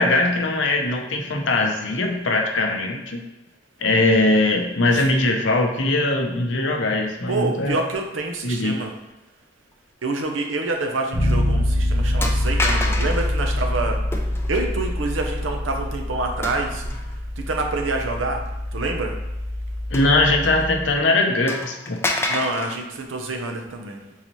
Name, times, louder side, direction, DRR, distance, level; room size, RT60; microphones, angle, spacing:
voice 1, 0.0-3.2 3.8-7.8 8.4-8.8 19.9-22.0, left 2 dB, 70° left, 2 dB, 0.7 m, -21 dB
voice 2, 7.3-8.9 10.0-14.0 14.5-16.9 17.4-19.2 22.3-24.1, right 2 dB, 85° right, 3 dB, 0.7 m, -27 dB
sound 1, 10.8-11.0 11.3-11.4 12.2-13.3 14.1-14.6 16.4-17.2 17.8-17.9 19.9-20.7 21.0-21.1 21.5-22.8, left 2 dB, 15° left, 0.4 m, -28 dB
Bass guitar, 11.1-21.0, left 1 dB, 45° right, 1.0 m, -25 dB
4.1 x 3.8 x 3.0 m, 1.0 s
head